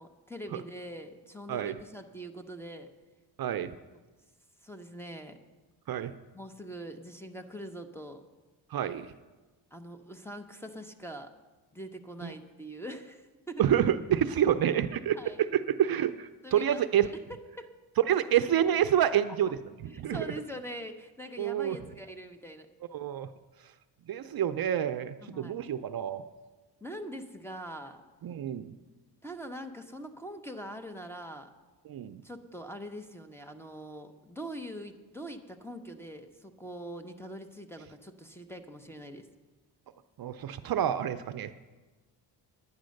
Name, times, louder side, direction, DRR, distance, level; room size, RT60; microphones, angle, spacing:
voice 1, 0.0-2.9 3.6-3.8 4.6-5.4 6.3-8.2 9.7-11.3 11.7-13.6 15.1-15.5 16.4-17.7 19.9-22.7 25.2-25.6 26.8-28.0 29.2-31.5 32.2-39.3, right 1 dB, 5° left, 7 dB, 0.8 m, -43 dB
voice 2, 3.4-3.7 5.9-6.1 8.7-9.1 12.2-12.3 13.6-15.2 15.5-17.1 18.1-19.6 19.8-20.3 21.4-21.8 22.9-23.3 24.1-26.2 28.2-28.7 31.9-32.2 40.2-41.5, right 10 dB, 55° right, 11 dB, 0.5 m, -28 dB
10.5 x 9.5 x 6.4 m, 1.2 s
cardioid pair, 100°, 44 cm